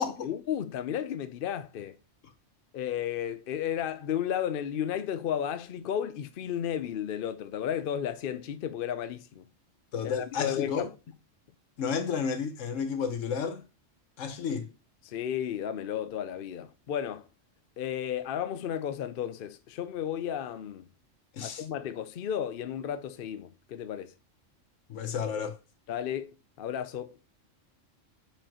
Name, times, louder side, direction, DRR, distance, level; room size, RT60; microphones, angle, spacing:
voice 1, 0.2-2.0 2.7-9.5 10.0-10.9 15.0-17.3 17.8-20.9 21.4-24.1 25.9-27.2, left 9 dB, 60° left, 0.6 m, -33 dB
voice 2, 9.9-10.9 11.8-13.6 14.2-14.7 21.3-21.6 24.9-25.6, left 6 dB, 80° left, 1.2 m, -31 dB
6.7 x 5.1 x 2.9 m
omnidirectional pair, 1.3 m